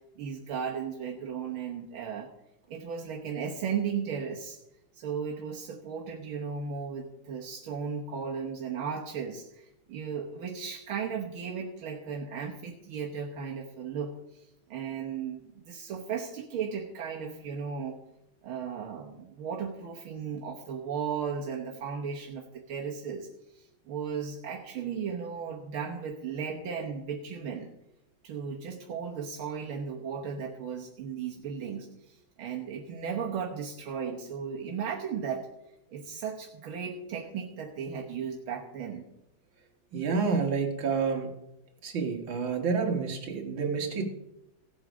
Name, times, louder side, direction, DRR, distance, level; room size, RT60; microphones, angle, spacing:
voice 1, 0.2-2.3 2.7-4.6 4.9-14.1 14.7-18.0 18.4-23.3 23.5-27.7 28.2-35.5 35.9-39.1, right 6 dB, 85° right, -1 dB, 2.0 m, -35 dB
voice 2, 39.9-41.3 41.8-44.0, right 5 dB, 70° right, 2 dB, 2.5 m, -29 dB
16.5 x 8.0 x 5.0 m, 0.85 s
omnidirectional pair, 2.2 m